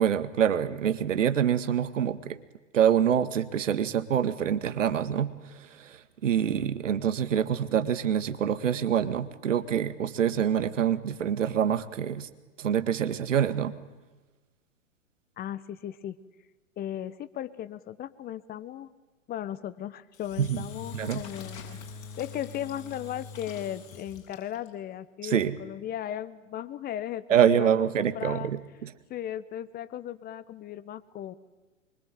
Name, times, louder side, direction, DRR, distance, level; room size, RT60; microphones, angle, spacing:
voice 1, 0.0-2.4 2.7-12.3 12.6-13.8 20.4-20.6 20.9-21.2 25.2-25.6 27.3-28.9, right 9 dB, 70° right, 12 dB, 2.0 m, -26 dB
voice 2, 15.4-16.2 16.8-18.9 19.3-21.8 22.2-27.2 27.6-28.5 29.1-31.4, left 11 dB, 25° left, 15 dB, 1.1 m, -36 dB
Engine / Drill, 20.1-24.7, left 5 dB, 55° left, 7.6 m, -43 dB
25.5 x 24.0 x 9.2 m, 1.2 s
hypercardioid pair, 110°, 39 cm